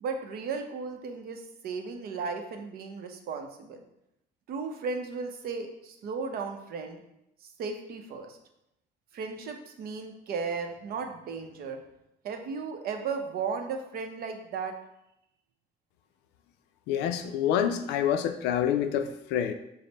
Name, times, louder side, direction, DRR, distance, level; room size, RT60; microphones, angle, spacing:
voice 1, 0.0-3.8 4.5-7.0 7.6-8.4 9.1-11.8 12.2-14.8, right 5 dB, 65° right, 5 dB, 0.6 m, -35 dB
voice 2, 16.9-19.5, left 9 dB, 90° left, 8 dB, 0.4 m, -27 dB
5.1 x 2.0 x 4.0 m, 0.83 s
cardioid pair, 110°, 17 cm